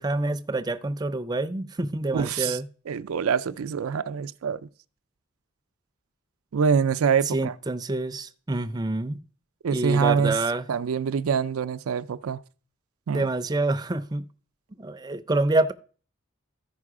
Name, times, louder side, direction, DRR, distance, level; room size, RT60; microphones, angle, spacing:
voice 1, 0.0-2.6 7.3-9.2 9.7-10.7 13.1-14.2 14.8-15.7, right 2 dB, 20° right, 0.5 m, -27 dB
voice 2, 2.1-2.6 2.9-4.6 6.5-7.5 9.6-10.4 10.7-12.4 13.1-13.3, right 6 dB, 80° right, 0.4 m, -25 dB
13.5 x 5.4 x 4.8 m
head